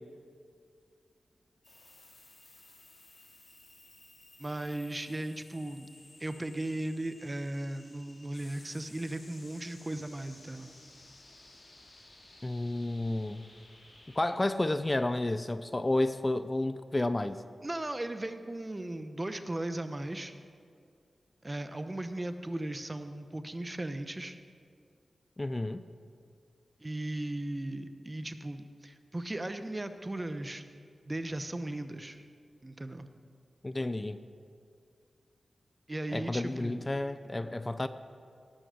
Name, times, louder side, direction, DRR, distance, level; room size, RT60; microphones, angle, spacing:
sound 1, 1.6-14.2, left 2 dB, 45° left, 2.7 m, -56 dB
voice 1, 4.4-5.9 6.2-10.7 17.6-20.3 21.4-24.4 26.8-30.6 31.1-32.2 32.6-33.1 35.9-36.9, right 1 dB, 25° right, 9 dB, 0.8 m, -37 dB
voice 2, 12.4-13.4 14.2-17.4 25.4-25.8 33.6-34.2 36.1-37.9, left 2 dB, 25° left, 12 dB, 0.4 m, -31 dB
18.0 x 6.2 x 6.3 m, 2.3 s
cardioid pair, 60°, 0 cm